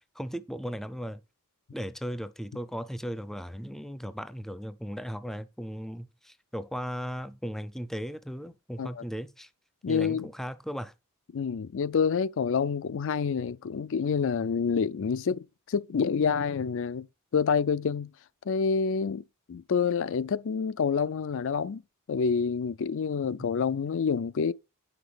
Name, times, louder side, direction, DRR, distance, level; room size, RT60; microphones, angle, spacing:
voice 1, 0.1-1.2 1.7-9.5 9.9-10.9, equal, ahead, 0.5 m, -37 dB
voice 2, 9.8-10.3 11.3-17.1 17.3-18.1 18.5-19.2 19.5-21.8 22.1-24.5, left 6 dB, 60° left, 0.4 m, -27 dB
9.2 x 5.9 x 5.1 m
head